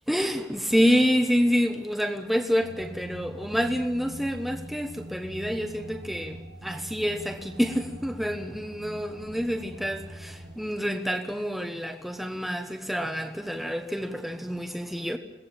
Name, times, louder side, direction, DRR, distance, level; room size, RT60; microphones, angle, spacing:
voice 1, 0.1-15.2, equal, ahead, 1.2 m, -27 dB
sound 1, 2.6-10.5, right 1 dB, 80° right, 6.5 m, -43 dB
22.5 x 17.5 x 8.8 m
head